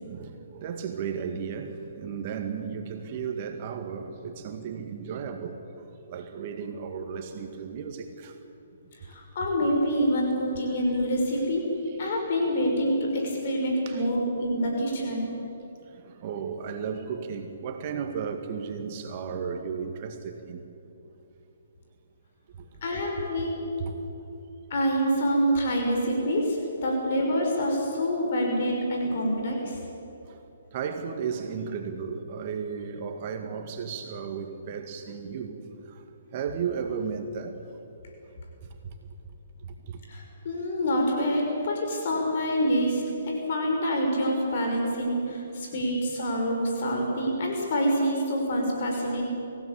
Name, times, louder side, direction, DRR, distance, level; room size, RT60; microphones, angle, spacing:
voice 1, 0.0-5.6 6.1-8.3 11.9-12.0 13.9-14.1 15.9-20.6 22.5-22.7 22.9-23.0 23.4-23.5 23.8-23.9 26.8-26.9 29.0-29.2 30.3-30.4 30.7-36.0 36.3-37.8 38.8-38.9 39.6-40.0 45.7-45.9, right 6 dB, 40° right, 6 dB, 2.0 m, -34 dB
voice 2, 9.0-11.7 12.0-15.3 22.8-23.6 24.7-29.8 40.1-49.3, equal, 50° left, 1 dB, 5.8 m, -26 dB
25.5 x 16.5 x 8.5 m, 2.9 s
figure-of-eight pair, 135°, 0 cm